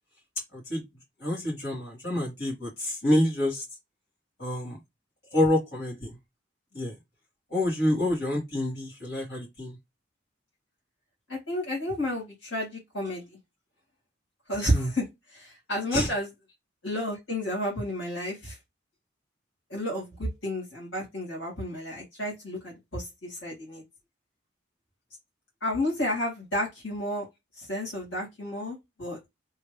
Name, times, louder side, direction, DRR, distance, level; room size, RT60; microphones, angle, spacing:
voice 1, 0.5-0.8 1.2-3.6 4.4-4.8 5.3-6.2 6.7-6.9 7.5-9.8 14.7-14.9 15.9-16.1, left 1 dB, 55° left, 2.3 m, -27 dB
voice 2, 11.3-13.4 14.5-16.3 16.8-18.6 19.7-23.8 25.6-27.3 27.6-29.2, left 1 dB, 75° left, 2.4 m, -31 dB
3.5 x 2.9 x 3.3 m
head